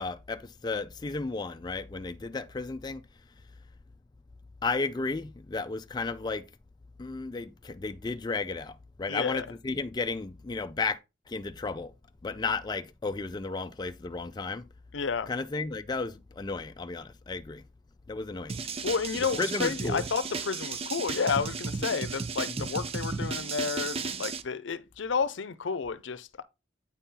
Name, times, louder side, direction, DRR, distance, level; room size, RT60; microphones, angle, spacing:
voice 1, 0.0-3.0 4.6-6.5 7.0-11.0 11.3-11.9 12.2-14.6 15.3-17.6 18.1-18.6 19.2-20.0 22.5-22.7, left 3 dB, 20° left, 0.4 m, -33 dB
voice 2, 9.1-9.5 14.9-15.3 18.8-26.4, left 5 dB, 80° left, 0.6 m, -31 dB
sound 1, 18.5-24.4, right 4 dB, 30° right, 0.5 m, -34 dB
8.9 x 4.2 x 3.7 m
head